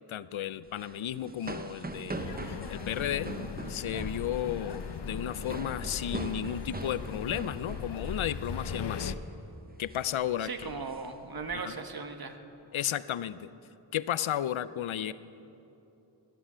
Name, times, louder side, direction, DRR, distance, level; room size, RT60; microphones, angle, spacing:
voice 1, 0.1-3.3 3.7-9.1 9.8-10.8 11.5-11.7 12.7-13.5 13.9-15.1, left 10 dB, 90° left, 16 dB, 0.6 m, -33 dB
sound 1, 0.7-8.8 9.0-9.3 9.7-10.0 10.4-11.6, right 3 dB, 20° right, 0.7 m, -42 dB
sound 2, 2.1-9.1, left 6 dB, 60° left, 0.8 m, -39 dB
voice 2, 10.4-12.4, right 4 dB, 50° right, 6 dB, 1.3 m, -38 dB
21.5 x 9.8 x 6.3 m, 2.9 s
wide cardioid pair, 90°, 46 cm